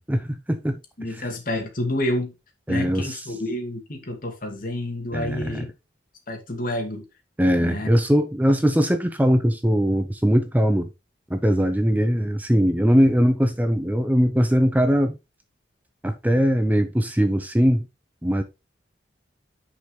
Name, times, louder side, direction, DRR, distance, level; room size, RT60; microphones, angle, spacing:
voice 1, 0.0-0.8 1.1-1.3 2.7-3.2 5.1-5.7 7.4-10.9 11.3-15.2 16.0-17.9 18.2-18.4, equal, 10° right, 0.6 m, -21 dB
voice 2, 1.0-2.3 2.7-5.7 6.3-7.0 7.6-7.9, left 1 dB, 50° left, 2.4 m, -29 dB
9.8 x 5.4 x 3.3 m
head